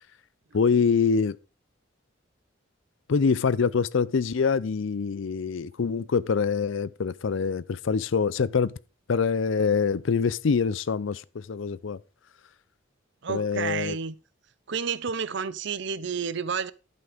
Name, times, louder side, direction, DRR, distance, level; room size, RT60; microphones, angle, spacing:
voice 1, 0.5-1.4 3.1-8.8 9.1-12.0 13.3-14.0, left 5 dB, 75° left, 0.5 m, -25 dB
voice 2, 13.2-14.2 14.7-16.7, right 6 dB, 60° right, 0.6 m, -30 dB
11.0 x 6.0 x 5.1 m
head